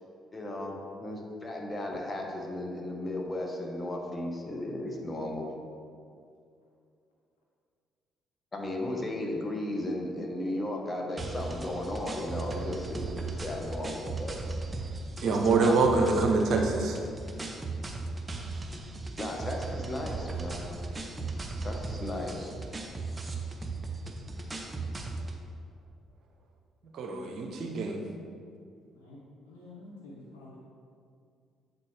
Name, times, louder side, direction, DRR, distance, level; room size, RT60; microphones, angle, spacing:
voice 1, 0.3-5.5 8.5-14.4 15.2-15.8 19.2-20.6 21.6-22.5, left 1 dB, 25° left, 0 dB, 1.2 m, -35 dB
sound 1, 11.2-25.4, right 3 dB, 25° right, 0.8 m, -37 dB
voice 2, 15.2-17.0 26.9-28.0, right 3 dB, 60° right, 2 dB, 0.8 m, -25 dB
voice 3, 28.9-30.6, left 2 dB, 85° left, -4 dB, 0.8 m, -50 dB
7.9 x 4.2 x 3.4 m, 2.3 s
hypercardioid pair, 50°, 0 cm